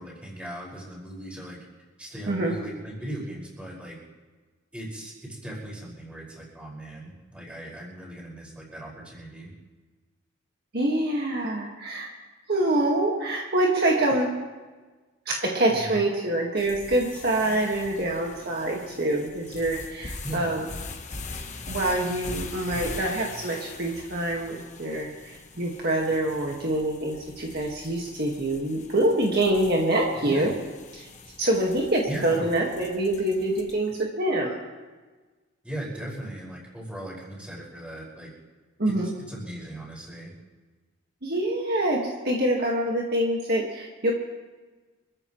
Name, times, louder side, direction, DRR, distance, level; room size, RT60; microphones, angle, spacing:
voice 1, 0.0-1.6 2.0-4.0 4.7-9.5 15.7-16.0 20.2-20.6 30.2-30.5 32.1-32.5 35.6-38.3 38.9-39.0 39.3-40.3, right 1 dB, 5° right, -5 dB, 5.6 m, -38 dB
voice 2, 10.7-12.1 12.5-14.3 15.3-20.7 21.7-25.1 25.6-30.5 30.9-31.1 31.4-34.6 38.8-39.1 41.2-44.1, right 1 dB, 50° right, -2 dB, 1.9 m, -25 dB
sound 1, 16.6-33.9, left 3 dB, 35° left, 1.2 m, -42 dB
26.5 x 15.0 x 3.2 m, 1.3 s
head